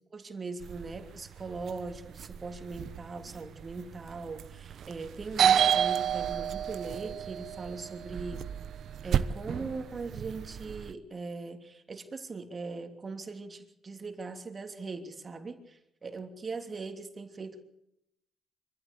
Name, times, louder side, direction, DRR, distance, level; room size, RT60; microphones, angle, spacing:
voice 1, 0.1-8.4 9.0-17.6, right 3 dB, 35° right, 5 dB, 3.1 m, -40 dB
sound 1, 0.6-10.9, right 9 dB, 65° right, 1.0 m, -31 dB
25.0 x 15.0 x 8.2 m, 0.82 s
cardioid pair, 90°, 0 cm